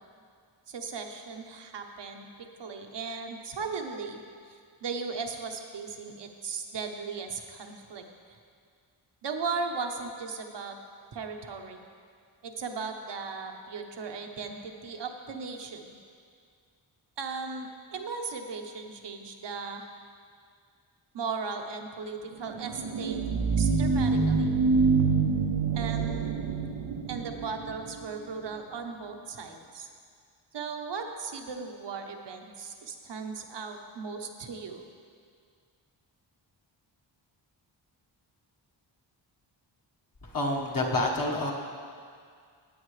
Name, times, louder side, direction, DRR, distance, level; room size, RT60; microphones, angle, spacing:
voice 1, 0.7-4.2 4.8-8.0 9.2-10.8 11.1-11.8 12.4-15.8 17.2-19.9 21.1-23.2 23.6-24.5 25.7-26.4 27.1-29.9 30.5-34.8, right 4 dB, 65° right, 4 dB, 1.0 m, -37 dB
sound 1, 22.5-28.0, right 4 dB, 90° right, 0.9 m, -26 dB
voice 2, 40.2-41.5, left 2 dB, 45° left, -1 dB, 1.4 m, -28 dB
16.5 x 8.8 x 3.3 m, 2.2 s
wide cardioid pair, 140°, 46 cm